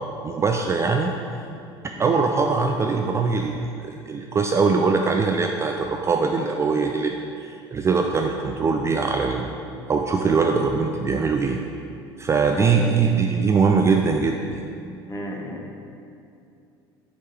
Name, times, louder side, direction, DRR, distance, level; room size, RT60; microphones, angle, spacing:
voice 1, 0.2-1.1 2.0-9.5 9.9-11.6 12.2-14.6, right 4 dB, 20° right, 3 dB, 0.3 m, -22 dB
voice 2, 12.6-12.9 15.1-15.8, equal, 20° left, 0 dB, 1.0 m, -33 dB
6.4 x 3.6 x 4.4 m, 2.6 s
figure-of-eight pair, 70°, 13 cm